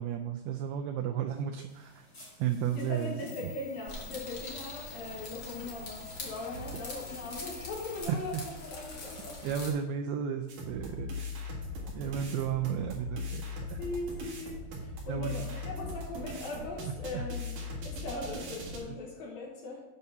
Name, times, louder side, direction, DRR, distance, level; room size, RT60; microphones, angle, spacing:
voice 1, 0.0-2.1 2.4-3.5 8.1-8.4 9.4-11.1 11.9-13.4 13.7-13.8 15.1-15.5 15.8-15.9 17.1-17.3 18.9-19.0, right 8 dB, 85° right, 5 dB, 2.2 m, -33 dB
sound 1, 1.7-8.0, left 3 dB, 30° left, 2.9 m, -49 dB
voice 2, 2.7-9.4 12.0-12.1 13.8-17.5 17.8-19.8, left 2 dB, 65° left, -2 dB, 2.7 m, -40 dB
sound 2, 3.9-9.7, left 2 dB, 85° left, 1.0 m, -44 dB
sound 3, 10.5-18.8, left 2 dB, 55° right, 2.4 m, -39 dB
8.5 x 5.4 x 5.6 m, 1.1 s
omnidirectional pair, 5.0 m